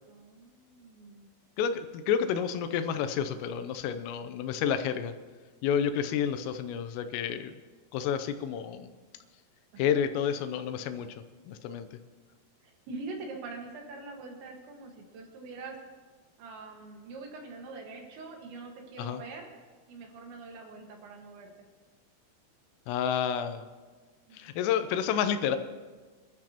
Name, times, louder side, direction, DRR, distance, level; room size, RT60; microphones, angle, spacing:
voice 1, 0.1-1.3 9.7-10.0 12.6-15.8 16.4-19.5 19.9-21.5 24.3-24.6, right 3 dB, 65° right, 1 dB, 3.7 m, -44 dB
voice 2, 1.6-5.1 5.6-7.5 7.9-8.9 9.8-11.9 19.0-19.2 22.9-23.7 24.3-25.6, left 8 dB, 80° left, 9 dB, 3.3 m, -30 dB
26.5 x 12.5 x 3.0 m, 1.4 s
omnidirectional pair, 6.0 m